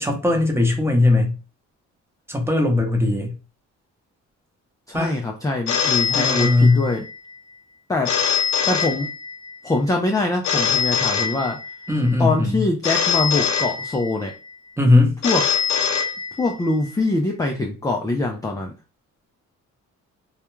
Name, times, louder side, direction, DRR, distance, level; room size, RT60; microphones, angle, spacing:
voice 1, 0.0-1.3 2.3-3.3 4.9-5.1 6.1-6.9 11.9-12.6 14.8-15.2, left 2 dB, 10° right, 3 dB, 0.8 m, -18 dB
voice 2, 4.9-7.1 7.9-8.1 8.7-9.1 9.6-11.6 12.2-14.3 15.2-15.4 16.4-18.7, left 2 dB, 10° left, 2 dB, 0.4 m, -23 dB
Telephone, 5.7-7.2 8.1-9.6 10.4-11.9 12.8-14.3 15.2-16.7, left 7 dB, 70° left, 0.6 m, -23 dB
2.3 x 2.2 x 3.0 m, 0.32 s
cardioid pair, 90°, 30 cm